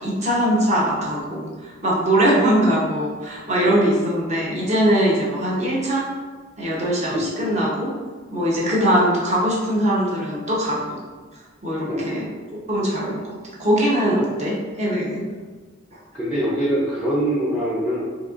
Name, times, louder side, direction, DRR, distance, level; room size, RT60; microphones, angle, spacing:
voice 1, 0.0-6.0 6.6-7.9 8.3-11.0 11.6-12.3 12.7-13.3 13.6-15.2, equal, 35° right, -5 dB, 0.8 m, -21 dB
voice 2, 7.1-7.5 11.9-12.3 16.1-18.0, right 1 dB, 5° right, -7 dB, 0.5 m, -24 dB
3.9 x 2.8 x 2.5 m, 1.4 s
head